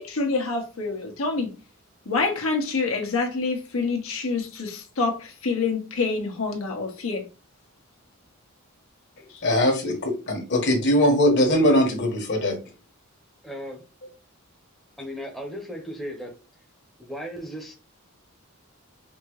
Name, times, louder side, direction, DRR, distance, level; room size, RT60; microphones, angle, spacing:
voice 1, 0.0-1.5 2.1-7.2, left 4 dB, 75° left, 1.3 m, -27 dB
voice 2, 9.4-12.6, left 1 dB, 55° left, 1.5 m, -21 dB
voice 3, 13.4-13.8 15.0-16.4 17.0-17.7, equal, ahead, 1.0 m, -36 dB
5.1 x 2.9 x 3.1 m
head